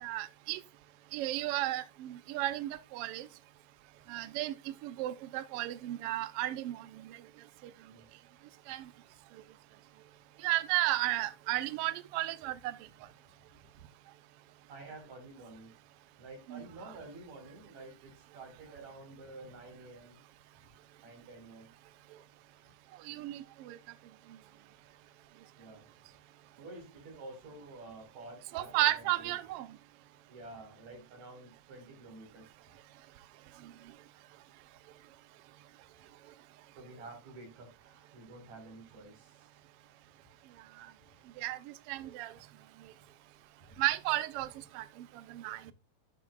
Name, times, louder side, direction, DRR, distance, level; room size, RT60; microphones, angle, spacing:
voice 1, 0.0-0.6 1.1-3.3 4.1-4.5 4.8-6.9 8.7-8.9 10.4-12.7 16.5-16.6 23.0-23.8 28.5-29.7 40.8-40.9 41.4-41.6 41.9-42.3 43.8-44.5 44.7-44.8 45.3-45.7, right 16 dB, 85° right, 1.3 m, -33 dB
voice 2, 14.7-15.7 16.2-20.2 21.0-21.7 25.6-25.8 26.6-29.3 30.3-32.5 36.8-39.5 43.7-43.8, right 2 dB, 70° right, 5.6 m, -50 dB
12.5 x 8.5 x 2.4 m
omnidirectional pair, 3.3 m